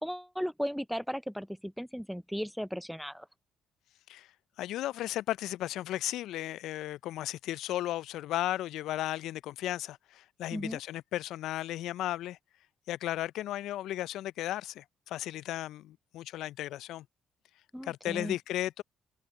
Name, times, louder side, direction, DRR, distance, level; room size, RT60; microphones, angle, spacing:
voice 1, 0.0-3.3 10.5-10.8 17.7-18.4, equal, ahead, 0.4 m, -36 dB
voice 2, 4.6-12.4 12.9-17.1 17.8-18.8, left 14 dB, 70° left, 0.4 m, -35 dB
hypercardioid pair, 50°, 0 cm